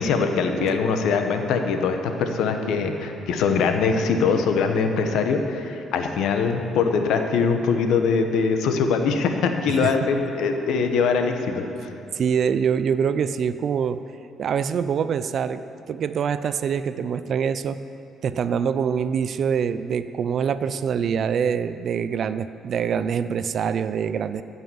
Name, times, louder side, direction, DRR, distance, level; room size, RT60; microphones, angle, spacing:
voice 1, 0.0-11.9, left 5 dB, 80° left, 5 dB, 1.0 m, -22 dB
voice 2, 12.1-14.0 14.4-15.6 15.9-17.8 18.2-24.4, right 7 dB, 55° right, 13 dB, 0.4 m, -25 dB
15.0 x 5.6 x 7.1 m, 2.8 s
cardioid pair, 95°, 0 cm